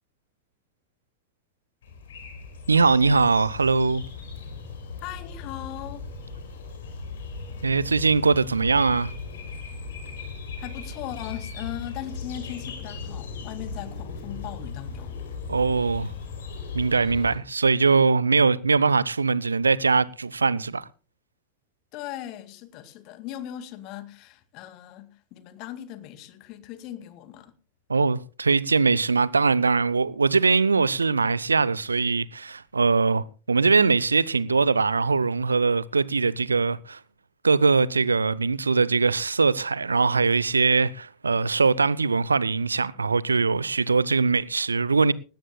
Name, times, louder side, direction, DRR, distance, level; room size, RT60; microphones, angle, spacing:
sound 1, 1.8-17.4, left 4 dB, 60° left, 4.6 m, -38 dB
voice 1, 2.7-4.0 7.6-9.1 15.5-16.1 16.7-20.9 27.9-37.0 37.4-45.1, right 4 dB, 75° right, 0.7 m, -22 dB
voice 2, 5.0-6.0 10.6-15.2 21.9-27.5, left 12 dB, 40° left, 2.2 m, -38 dB
19.5 x 17.5 x 2.2 m
figure-of-eight pair, 90°, 0 cm